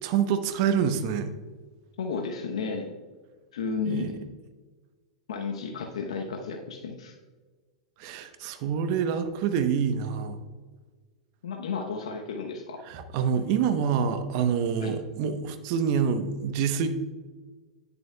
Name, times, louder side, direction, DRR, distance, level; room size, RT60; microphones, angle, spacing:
voice 1, 0.0-1.3 3.9-4.1 8.0-10.4 12.9-17.0, right 7 dB, 50° right, 9 dB, 0.8 m, -26 dB
voice 2, 2.0-2.9 3.5-4.1 5.3-7.1 11.4-12.8 14.8-14.9, left 5 dB, 75° left, 3 dB, 0.8 m, -33 dB
10.5 x 6.8 x 2.2 m, 1.4 s
hypercardioid pair, 105°, 3 cm